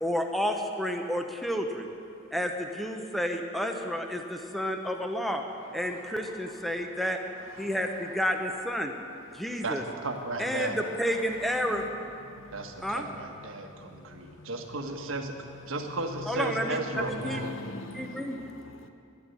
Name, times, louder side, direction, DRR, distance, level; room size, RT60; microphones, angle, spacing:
voice 1, 0.0-1.9 2.3-5.4 5.7-7.2 7.6-8.9 9.3-9.8 10.4-11.8 12.8-13.0 16.3-16.8 17.0-17.4 17.9-18.4, equal, ahead, 0.9 m, -30 dB
voice 2, 9.6-10.8 12.5-15.4 15.7-17.6, right 2 dB, 70° right, 1.5 m, -35 dB
voice 3, 11.4-11.9 12.3-13.0 13.6-14.5 16.9-18.9, left 1 dB, 65° left, 1.0 m, -43 dB
11.5 x 11.0 x 9.9 m
head